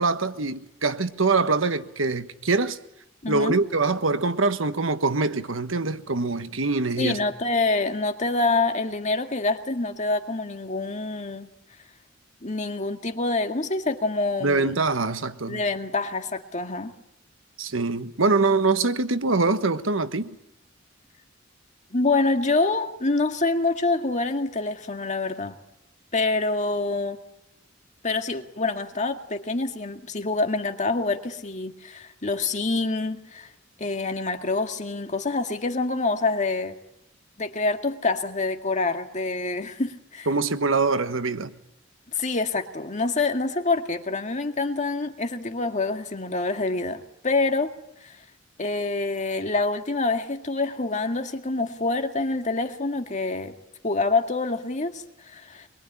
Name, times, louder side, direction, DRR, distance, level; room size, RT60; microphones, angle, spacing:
voice 1, 0.0-2.8 3.3-7.2 14.4-15.6 17.6-20.3 40.3-41.5, right 3 dB, 85° right, 1.4 m, -24 dB
voice 2, 3.2-3.6 7.0-11.5 12.4-14.7 15.5-16.9 21.9-25.6 26.1-27.2 28.0-33.5 33.8-36.8 37.4-40.3 42.1-47.7 48.0-48.2 48.6-53.5 53.8-55.7, left 3 dB, 40° left, 2.0 m, -26 dB
24.5 x 22.5 x 10.0 m
head